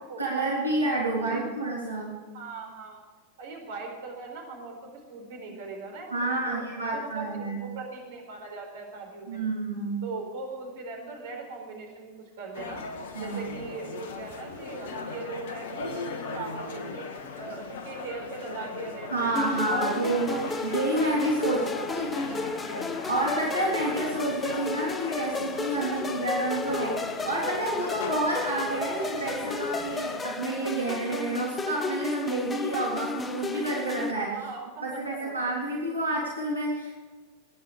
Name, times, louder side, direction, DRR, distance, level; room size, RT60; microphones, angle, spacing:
voice 1, 0.2-2.1 6.1-7.7 9.3-10.0 13.1-13.4 19.1-20.3 20.6-21.7 21.9-22.1 23.1-34.4 34.8-37.0, right 2 dB, 80° right, -4 dB, 3.5 m, -29 dB
voice 2, 2.3-3.0 3.4-9.4 10.0-12.8 13.2-17.1 17.4-20.0 20.3-20.8 21.4-22.9 34.3-35.5, right 4 dB, 55° right, 1 dB, 4.5 m, -40 dB
sound 1, 12.5-30.2, left 4 dB, 55° left, 1.6 m, -38 dB
sound 2, 19.3-34.1, left 3 dB, 15° left, 0.8 m, -34 dB
22.5 x 10.5 x 5.1 m, 1.4 s
figure-of-eight pair, 90°, 0 cm